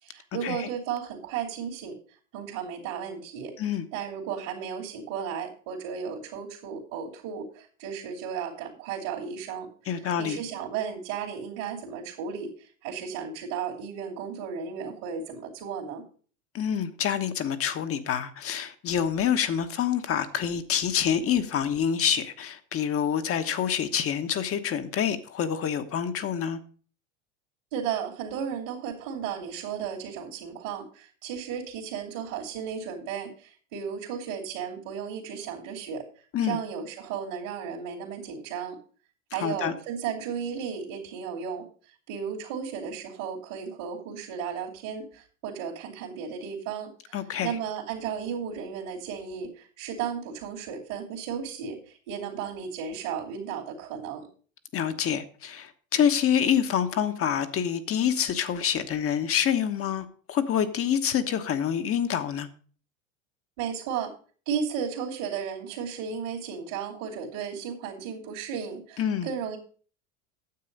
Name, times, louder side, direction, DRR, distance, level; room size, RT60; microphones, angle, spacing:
voice 1, 0.0-1.9 2.3-16.1 27.7-36.0 36.4-38.8 39.3-41.7 42.1-54.3 63.6-64.1 64.5-69.6, right 7 dB, 70° right, 2.9 m, -34 dB
voice 2, 9.9-10.4 16.5-26.6 36.3-36.6 39.3-39.7 47.1-47.6 54.7-62.5 69.0-69.3, left 8 dB, 35° left, 1.1 m, -27 dB
9.6 x 7.5 x 5.3 m
hypercardioid pair, 95°, 39 cm